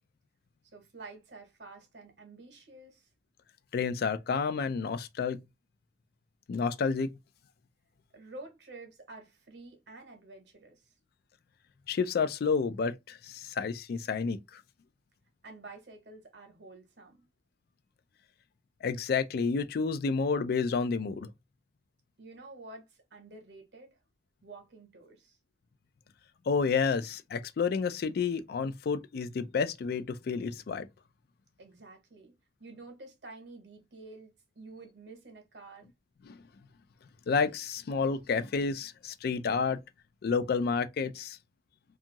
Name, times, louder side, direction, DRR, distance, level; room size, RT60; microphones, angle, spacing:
voice 1, 0.7-3.1 8.1-10.8 15.4-17.2 22.2-24.0 24.4-25.4 31.6-35.9, right 2 dB, 65° right, 0.9 m, -49 dB
voice 2, 3.7-5.4 6.5-7.1 11.9-14.6 18.8-21.3 26.5-30.9 36.3-36.4 37.3-39.8 40.2-41.4, left 5 dB, 55° left, 0.3 m, -30 dB
2.6 x 2.4 x 2.8 m
head